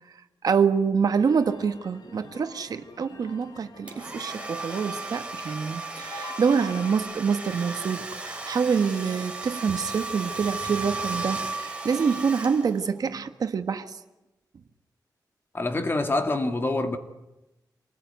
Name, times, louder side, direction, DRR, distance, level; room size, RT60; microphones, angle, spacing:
voice 1, 0.4-14.0, right 6 dB, 65° right, 1.5 m, -26 dB
sound 1, 1.2-5.8 6.0-7.0, left 3 dB, 70° left, 4.8 m, -45 dB
Domestic sounds home sounds, 3.9-13.0, right 3 dB, 15° right, 3.2 m, -35 dB
voice 2, 15.5-17.0, left 2 dB, 30° left, 2.0 m, -26 dB
27.0 x 20.0 x 9.3 m
wide cardioid pair, 120°, 7 cm